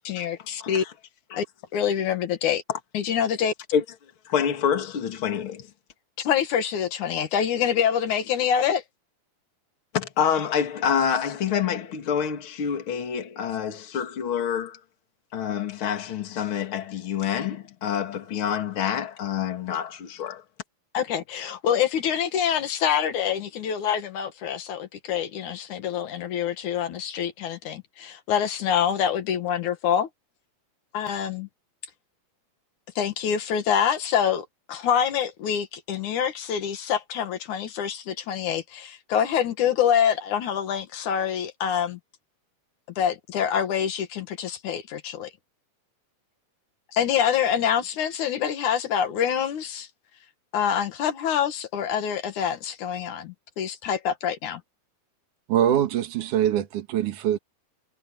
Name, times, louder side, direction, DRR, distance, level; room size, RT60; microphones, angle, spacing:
voice 1, 0.0-0.8 1.3-1.4 1.7-2.6 2.9-3.5 6.2-8.8 20.9-30.1 30.9-31.5 33.0-42.0 43.0-45.3 46.9-49.9 50.5-54.6, left 8 dB, 75° left, 3.0 m, -26 dB
voice 2, 4.3-5.7 9.9-14.8 15.3-20.4, left 8 dB, 45° left, 2.8 m, -27 dB
voice 3, 55.5-57.4, right 10 dB, 80° right, 3.1 m, -23 dB
omnidirectional pair, 3.5 m